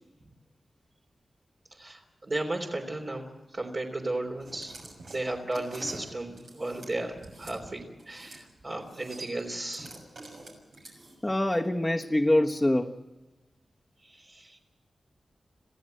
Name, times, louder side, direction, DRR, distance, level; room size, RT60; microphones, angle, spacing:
voice 1, 1.7-4.7 5.1-9.9 14.0-14.6, right 2 dB, 50° right, -1 dB, 3.5 m, -35 dB
sound 1, 4.4-7.6 8.0-8.4 8.7-11.3, right 2 dB, 80° right, 6.6 m, -46 dB
voice 2, 11.2-13.0, left 1 dB, 15° left, -1 dB, 1.3 m, -24 dB
26.0 x 15.5 x 7.9 m, 1.2 s
cardioid pair, 50°, 0 cm